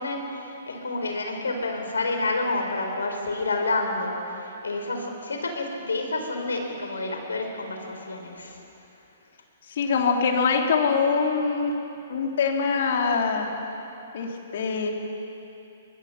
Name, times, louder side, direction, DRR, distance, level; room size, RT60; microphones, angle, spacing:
voice 1, 0.0-8.6, left 2 dB, 80° left, 3 dB, 4.1 m, -29 dB
voice 2, 9.7-11.8 12.1-13.5 14.1-14.9, left 5 dB, 60° left, 2 dB, 3.2 m, -23 dB
23.0 x 22.0 x 5.9 m, 2.9 s
hypercardioid pair, 125°, 0 cm